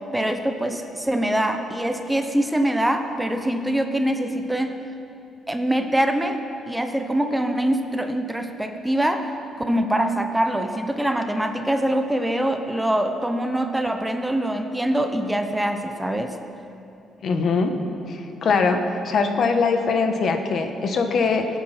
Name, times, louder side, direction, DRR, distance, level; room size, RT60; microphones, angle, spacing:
voice 1, 0.1-4.8 5.5-6.4 6.7-9.3 9.7-16.4, right 1 dB, 5° right, 6 dB, 0.8 m, -24 dB
voice 2, 17.2-17.7 18.1-21.5, left 4 dB, 50° left, 6 dB, 1.2 m, -22 dB
21.5 x 8.7 x 5.8 m, 2.8 s
cardioid pair, 135°, 0 cm